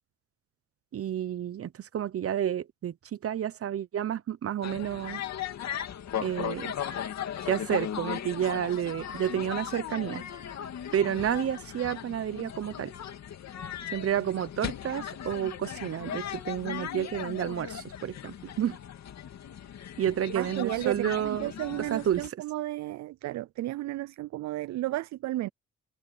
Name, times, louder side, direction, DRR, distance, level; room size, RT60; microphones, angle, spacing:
voice 1, 0.9-5.2 6.2-6.7 7.4-10.2 10.9-12.9 13.9-18.8 20.0-21.5 21.9-22.4, right 10 dB, 50° right, 1.0 m, -30 dB
sound 1, 4.6-22.3, left 9 dB, 60° left, 2.5 m, -37 dB
voice 2, 20.3-25.5, right 16 dB, 65° right, 0.5 m, -33 dB
cardioid pair, 90°, 30 cm